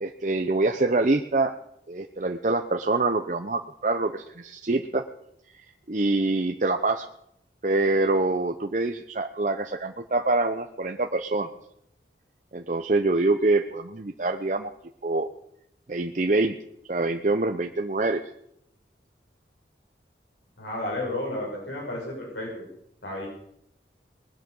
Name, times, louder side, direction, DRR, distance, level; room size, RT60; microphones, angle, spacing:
voice 1, 0.0-1.5 1.9-5.0 5.5-7.1 7.6-11.5 12.5-14.7 15.0-15.3 15.9-16.5 16.9-18.2, right 2 dB, 45° right, 6 dB, 0.7 m, -25 dB
voice 2, 20.6-22.5 23.0-23.3, left 1 dB, 85° left, -2 dB, 5.9 m, -32 dB
20.5 x 9.7 x 7.0 m, 0.75 s
head